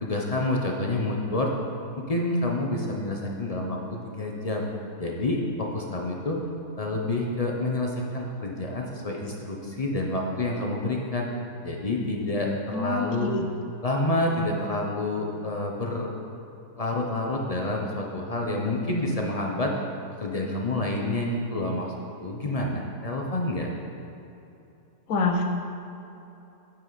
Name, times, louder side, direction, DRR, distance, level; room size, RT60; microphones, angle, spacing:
voice 1, 0.0-1.5 2.0-4.7 5.0-6.4 6.8-11.3 11.6-13.3 13.8-16.1 16.8-19.7 20.2-21.9 22.2-23.7, left 2 dB, 40° left, 0 dB, 0.6 m, -28 dB
voice 2, 12.7-13.4 25.1-25.4, left 4 dB, 65° left, 3 dB, 1.2 m, -26 dB
8.9 x 7.6 x 4.0 m, 2.9 s
omnidirectional pair, 1.7 m